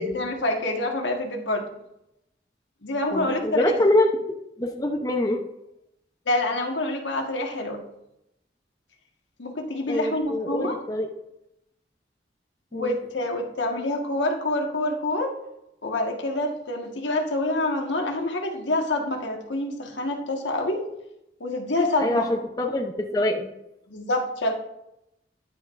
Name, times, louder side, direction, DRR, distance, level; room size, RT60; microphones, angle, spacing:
voice 1, 0.0-1.8 2.8-3.7 6.2-7.8 9.4-10.8 12.7-15.3 15.8-20.8 21.4-22.3 23.9-24.6, left 1 dB, 85° left, 2 dB, 1.5 m, -27 dB
voice 2, 3.1-4.1 4.6-5.4 9.9-11.1 12.7-13.0 22.0-23.5, left 1 dB, 20° left, 3 dB, 0.7 m, -24 dB
10.5 x 9.3 x 2.5 m, 0.85 s
head